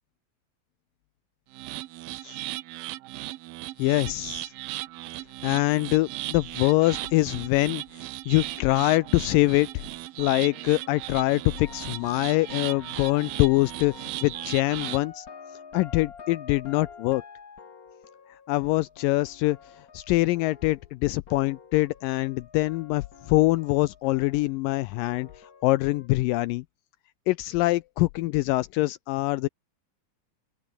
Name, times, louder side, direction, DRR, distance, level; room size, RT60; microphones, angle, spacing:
sound 1, 1.5-15.1, right 18 dB, 80° right, 2.5 m, -37 dB
voice 1, 3.8-4.5 5.4-9.8 10.2-15.3 15.7-17.2 18.5-19.6 19.9-25.3 25.6-26.6 27.3-29.5, left 19 dB, 80° left, 2.1 m, -24 dB
sound 2, 8.3-21.0 21.3-26.1, left 6 dB, 35° left, 1.5 m, -48 dB
open air
omnidirectional pair, 4.2 m